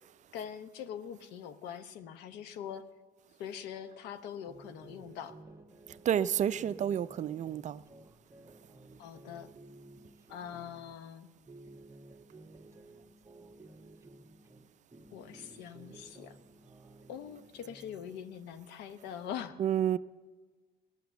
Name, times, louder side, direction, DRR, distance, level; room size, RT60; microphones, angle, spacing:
voice 1, 0.3-2.9 3.4-5.4 9.0-9.5 10.3-11.3 15.1-16.4 17.1-19.6, left 8 dB, 90° left, 0.9 m, -43 dB
sound 1, 4.5-10.9 11.3-14.6 14.9-18.0, right 2 dB, 15° right, 1.3 m, -54 dB
voice 2, 6.1-7.8 19.6-20.0, right 9 dB, 45° right, 0.5 m, -29 dB
16.5 x 11.5 x 7.0 m
cardioid pair, 110°, 17 cm